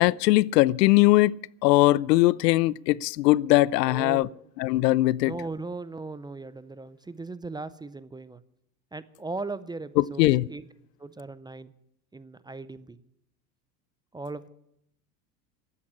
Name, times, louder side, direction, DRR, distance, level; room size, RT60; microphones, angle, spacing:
voice 1, 0.0-1.4 1.6-4.3 4.6-5.3 10.0-10.5, left 18 dB, 75° left, 0.6 m, -20 dB
voice 2, 3.9-4.4 5.2-8.4 8.9-10.7 11.0-11.7 12.1-13.0 14.1-14.5, right 3 dB, 10° right, 0.5 m, -38 dB
13.5 x 8.7 x 9.9 m
hypercardioid pair, 90°, 50 cm